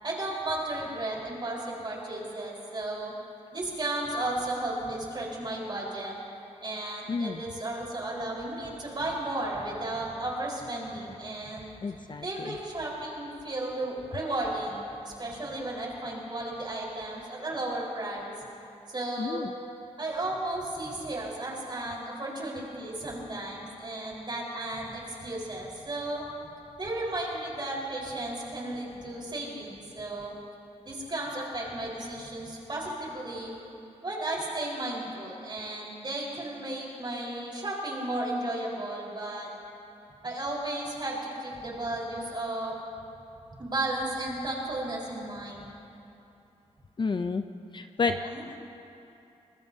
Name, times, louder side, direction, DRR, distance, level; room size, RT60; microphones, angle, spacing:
voice 1, 0.0-3.1 3.5-6.1 6.6-11.7 12.2-14.8 15.0-18.3 18.9-19.4 20.0-26.2 26.8-30.3 30.8-33.5 34.0-39.5 40.2-42.7 43.6-45.7 48.0-48.5, right 1 dB, 40° right, -3 dB, 4.5 m, -34 dB
voice 2, 7.1-7.4 11.8-12.6 19.2-19.5 47.0-47.4 47.7-48.1 48.5-48.6, left 4 dB, 40° left, 8 dB, 0.5 m, -30 dB
24.0 x 20.5 x 2.8 m, 2.8 s
cardioid pair, 90°, 12 cm